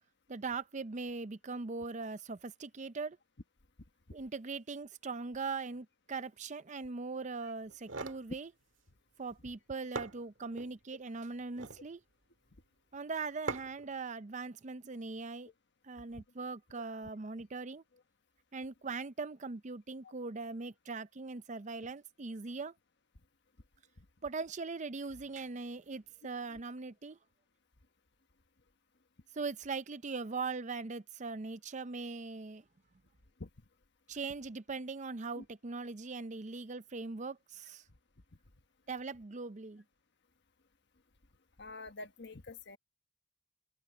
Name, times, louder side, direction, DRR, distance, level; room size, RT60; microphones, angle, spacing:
voice 1, 0.3-3.2 4.1-8.5 9.2-12.0 12.9-15.5 15.8-17.8 18.5-22.7 24.2-27.2 29.3-32.6 34.1-37.8 38.9-39.8, right 4 dB, 35° right, 0.6 m, -40 dB
sound 1, 7.7-8.2 9.5-9.6 10.0-10.7 11.4-11.9 13.5-13.9, right 3 dB, 70° right, 1.8 m, -41 dB
voice 2, 41.6-42.8, left 2 dB, 60° left, 1.4 m, -47 dB
open air
head